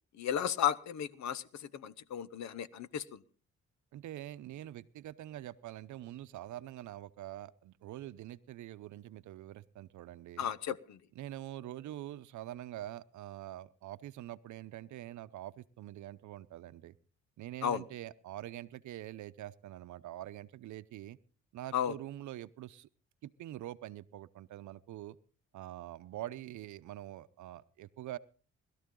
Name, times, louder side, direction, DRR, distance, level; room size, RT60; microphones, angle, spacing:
voice 1, 0.2-3.2 10.4-11.0 17.6-17.8 21.7-21.9, left 9 dB, 65° left, 18 dB, 1.0 m, -34 dB
voice 2, 3.9-10.5 11.1-16.9 17.4-21.2 21.5-22.9 23.2-25.2 25.5-28.2, right 13 dB, 75° right, 14 dB, 0.8 m, -45 dB
20.0 x 13.0 x 3.8 m, 0.37 s
cardioid pair, 90°, 30 cm